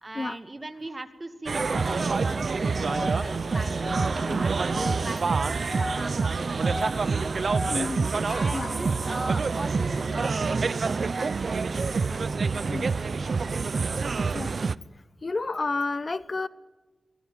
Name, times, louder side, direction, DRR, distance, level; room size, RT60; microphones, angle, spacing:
voice 1, 0.0-7.5 8.3-13.0 13.6-13.7, right 2 dB, 30° right, 9 dB, 2.3 m, -40 dB
sound 1, 1.5-14.8, right 4 dB, 60° right, 0.7 m, -27 dB
sound 2, 1.7-2.1 2.6-7.9 8.3-10.0, left 1 dB, 25° left, 7.2 m, -37 dB
voice 2, 7.7-8.1 8.5-8.7 12.7-12.9 14.3-14.5 15.2-16.5, left 3 dB, 45° left, 16 dB, 0.8 m, -30 dB
23.5 x 20.0 x 9.3 m, 1.2 s
cardioid pair, 70°, 0 cm